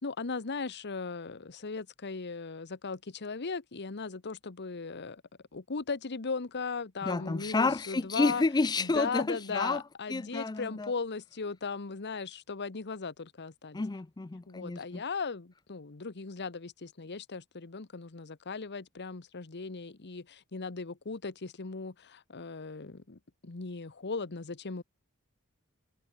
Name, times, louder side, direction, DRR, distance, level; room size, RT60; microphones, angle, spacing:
voice 1, 0.0-5.2 5.5-8.4 8.8-13.8 14.5-24.8, left 4 dB, 50° left, 1.0 m, -37 dB
voice 2, 7.0-9.8 10.1-10.9 13.7-15.0, left 3 dB, 20° left, 0.4 m, -30 dB
head